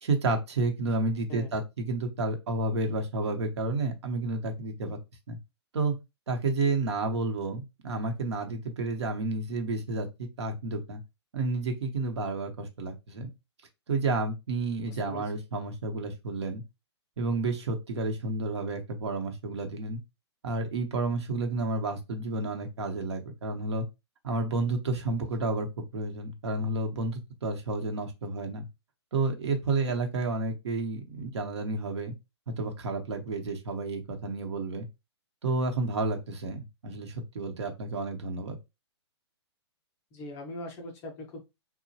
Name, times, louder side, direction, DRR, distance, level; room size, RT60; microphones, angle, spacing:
voice 1, 0.0-5.0 5.3-5.4 5.7-5.9 6.3-11.0 11.3-13.3 13.9-16.6 17.2-20.0 20.4-23.8 24.2-25.7 25.9-28.7 29.1-32.1 32.5-34.9 35.4-38.5, right 3 dB, 70° right, 0.9 m, -31 dB
voice 2, 14.9-15.3 40.1-41.4, left 2 dB, 20° left, 0.4 m, -41 dB
2.9 x 2.1 x 2.7 m
hypercardioid pair, 160°, 15 cm